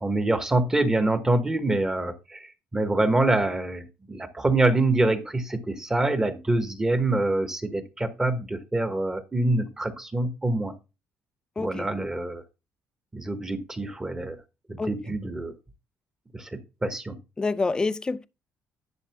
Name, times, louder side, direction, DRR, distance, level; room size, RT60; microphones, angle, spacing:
voice 1, 0.0-10.7 11.6-12.4 13.1-14.4 14.7-15.5 16.3-17.2, right 2 dB, 10° right, 1.2 m, -25 dB
voice 2, 17.4-18.3, left 3 dB, 15° left, 0.5 m, -27 dB
11.0 x 6.4 x 3.5 m
cardioid pair, 150°, 5 cm